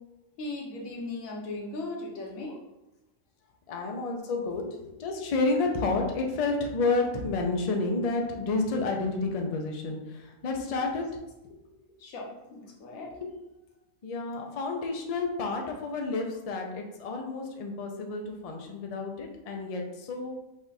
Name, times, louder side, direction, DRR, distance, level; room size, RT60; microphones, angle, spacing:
voice 1, 0.4-2.6 10.9-11.0 12.0-13.1, left 2 dB, 90° left, -1 dB, 1.3 m, -38 dB
voice 2, 3.7-11.0 11.4-11.6 13.2-13.3 14.0-20.3, left 3 dB, 45° left, 2 dB, 0.5 m, -30 dB
5.2 x 2.4 x 4.0 m, 0.96 s
omnidirectional pair, 1.4 m